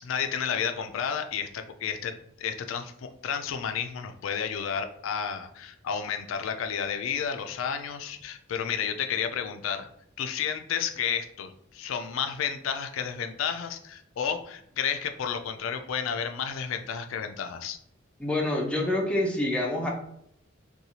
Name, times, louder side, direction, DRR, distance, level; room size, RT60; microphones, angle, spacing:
voice 1, 0.0-9.9 10.2-17.8, left 7 dB, 75° left, 7 dB, 0.3 m, -31 dB
voice 2, 18.2-19.9, left 1 dB, 5° left, -1 dB, 0.5 m, -27 dB
2.7 x 2.3 x 2.8 m, 0.73 s
head